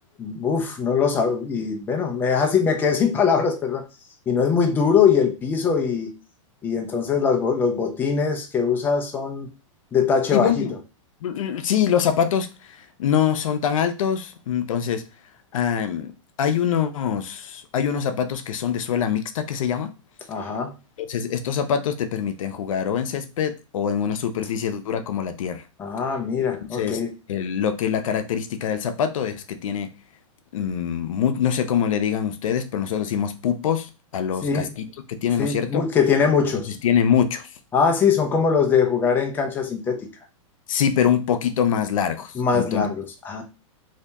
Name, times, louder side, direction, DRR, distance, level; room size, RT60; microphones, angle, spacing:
voice 1, 0.2-3.8 4.3-6.1 6.6-9.5 9.9-10.7 20.3-20.7 25.8-27.1 34.4-34.7 35.4-36.7 37.7-40.1 42.3-43.4, left 6 dB, 10° left, 0.4 m, -22 dB
voice 2, 10.3-10.7 11.2-12.5 13.0-15.0 15.5-16.1 16.4-19.9 21.0-25.6 26.7-29.9 30.5-35.8 36.8-37.5 40.7-42.9, left 8 dB, 75° left, 0.6 m, -24 dB
2.7 x 2.7 x 3.4 m
supercardioid pair, 155°, 17 cm